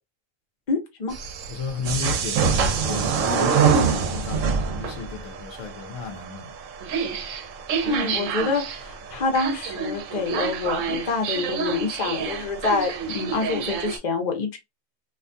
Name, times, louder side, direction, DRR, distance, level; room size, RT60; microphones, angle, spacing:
voice 1, 0.7-1.1 7.9-14.6, left 3 dB, 40° left, 0.8 m, -27 dB
sound 1, 1.1-14.0, right 5 dB, 75° right, 0.9 m, -26 dB
voice 2, 1.5-6.5, left 5 dB, 70° left, 1.0 m, -34 dB
2.5 x 2.3 x 2.6 m
omnidirectional pair, 1.4 m